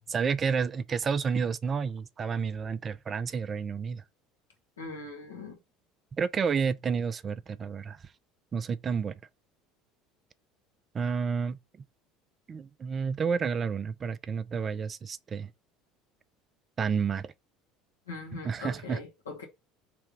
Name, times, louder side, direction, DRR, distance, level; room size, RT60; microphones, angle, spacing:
voice 1, 0.1-4.0 6.2-8.0 8.5-9.1 10.9-11.6 12.5-15.5 16.8-17.3 18.4-19.0, right 6 dB, 35° right, 0.4 m, -30 dB
voice 2, 4.8-5.6 18.1-19.5, left 3 dB, 80° left, 1.3 m, -41 dB
3.4 x 3.4 x 3.2 m
figure-of-eight pair, 65°, 0 cm